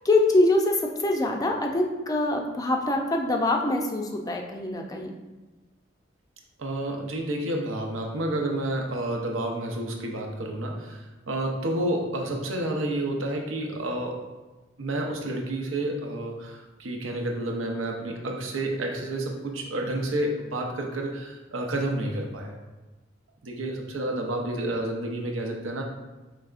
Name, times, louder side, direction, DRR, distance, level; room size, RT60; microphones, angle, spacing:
voice 1, 0.0-5.1, left 2 dB, 20° left, 2 dB, 0.4 m, -24 dB
voice 2, 6.6-14.3 14.8-22.6 23.4-25.8, right 1 dB, 85° right, 2 dB, 0.7 m, -30 dB
4.8 x 3.2 x 2.4 m, 1.2 s
head